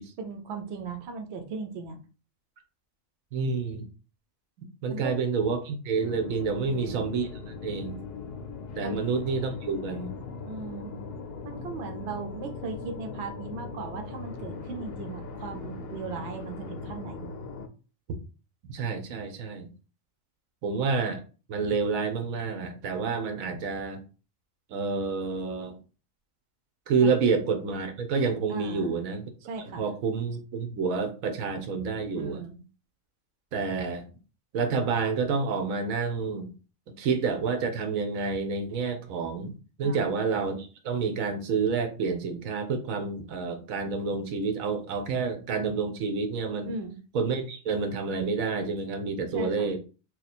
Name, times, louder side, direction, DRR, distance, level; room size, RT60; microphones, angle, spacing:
voice 1, 0.2-2.0 4.9-5.1 6.5-7.0 8.8-9.0 10.5-10.9 11.4-17.3 27.0-27.1 28.5-28.9 29.5-29.9 32.2-32.6 39.8-40.2 46.6-47.0 49.3-49.7, right 4 dB, 60° right, 4 dB, 0.9 m, -38 dB
voice 2, 3.3-3.9 4.8-8.0 8.8-10.2 18.7-19.7 20.6-21.2 21.5-24.0 24.7-25.8 26.9-29.3 29.6-32.4 33.5-34.1 34.5-36.5 37.0-46.8 47.1-49.8, right 4 dB, 85° right, 6 dB, 1.1 m, -29 dB
sound 1, 6.0-17.7, left 4 dB, 65° left, 0.6 m, -39 dB
2.8 x 2.4 x 4.1 m, 0.34 s
omnidirectional pair, 1.4 m